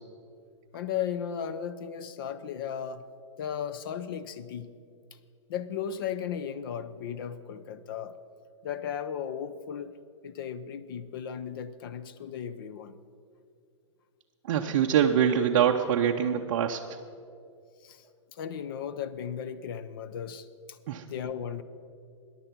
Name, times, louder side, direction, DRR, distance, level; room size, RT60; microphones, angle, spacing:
voice 1, 0.7-3.0 3.4-4.7 5.5-8.2 8.6-9.9 10.2-12.9 17.8-18.0 18.3-20.8 21.1-21.6, left 8 dB, 45° left, 13 dB, 0.6 m, -35 dB
voice 2, 14.4-16.8 20.9-21.1, right 8 dB, 45° right, 2 dB, 0.6 m, -24 dB
14.5 x 10.5 x 6.0 m, 2.4 s
hypercardioid pair, 160°, 16 cm